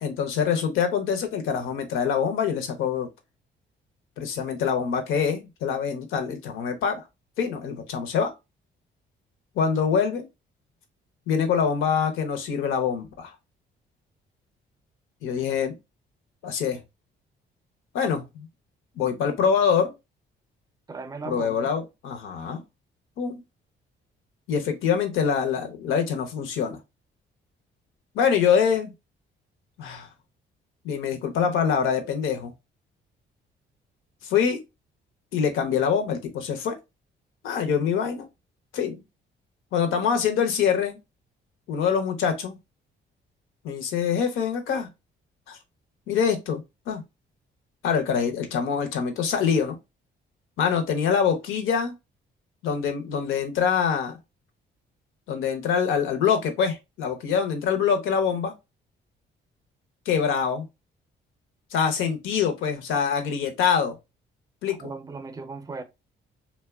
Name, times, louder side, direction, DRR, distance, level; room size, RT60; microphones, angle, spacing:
voice 1, 0.0-3.1 4.2-7.1 7.4-8.3 9.6-10.3 11.3-13.3 15.2-15.8 16.4-16.8 17.9-18.5 19.0-19.9 21.2-22.6 23.2-23.4 24.5-26.8 28.1-28.9 29.8-30.1 30.8-32.5 34.2-34.6 35.3-36.8 37.4-38.3 38.7-39.0 39.7-41.0 41.7-42.6 43.6-44.9 45.5-45.6 46.1-46.6 46.9-47.0 47.8-49.8 50.6-51.9 52.6-54.2 55.3-58.5 60.1-60.7 61.7-63.9 64.6-64.8, left 7 dB, 85° left, 0.7 m, -25 dB
voice 2, 20.9-21.7 64.8-65.8, right 4 dB, 20° right, 0.5 m, -37 dB
2.8 x 2.1 x 2.2 m
cardioid pair, 90°, 20 cm